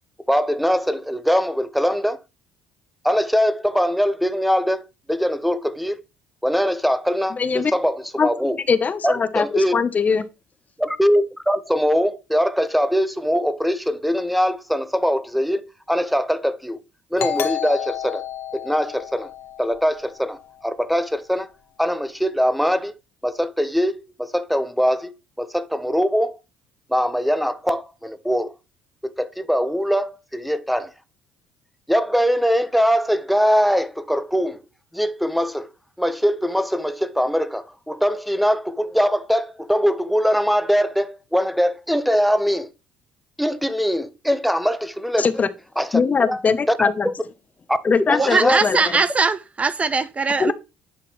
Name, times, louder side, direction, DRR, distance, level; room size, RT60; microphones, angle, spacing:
voice 1, 0.3-2.2 3.0-4.8 5.1-6.0 6.4-8.6 9.0-9.8 10.8-15.6 15.9-16.8 17.1-18.2 18.6-19.3 19.6-20.4 20.6-21.5 21.8-22.9 23.2-25.1 25.4-26.4 26.9-28.5 29.2-30.9 31.9-34.6 34.9-35.7 36.0-42.7 43.4-45.3 45.8-46.0 46.3-46.4 46.7-46.8 47.0-47.2 47.7-47.8 48.1-48.6, equal, ahead, 0.8 m, -22 dB
voice 2, 7.4-7.7 8.2-10.2 45.2-45.5 45.9-47.1 47.8-49.0 50.4-50.5, left 5 dB, 35° left, 0.7 m, -21 dB
Doorbell, 17.2-20.5, left 10 dB, 60° left, 1.0 m, -30 dB
voice 3, 48.2-50.5, right 4 dB, 30° right, 0.4 m, -20 dB
10.0 x 4.0 x 3.0 m
hypercardioid pair, 65°, 5 cm